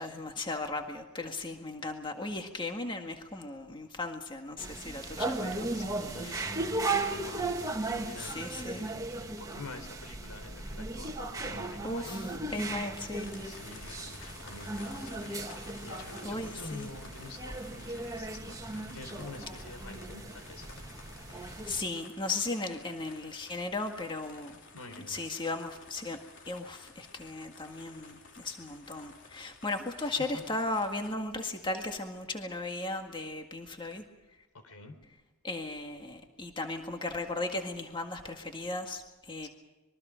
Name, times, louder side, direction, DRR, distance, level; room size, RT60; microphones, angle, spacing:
voice 1, 0.0-5.8 6.2-6.5 8.2-8.8 11.8-13.3 16.2-16.9 21.3-24.6 25.1-26.2 26.5-34.0 35.4-39.5, left 2 dB, 20° left, 4 dB, 1.8 m, -36 dB
sound 1, 4.6-21.8, right 2 dB, 15° right, 1.9 m, -37 dB
voice 2, 5.7-12.2 13.4-18.6 18.8-20.7 24.7-25.2 30.0-30.4 34.6-35.0 39.4-39.5, left 2 dB, 85° left, 7 dB, 4.3 m, -48 dB
sound 2, 13.2-31.2, left 4 dB, 55° left, 3.5 m, -52 dB
26.0 x 22.5 x 5.2 m, 1.1 s
head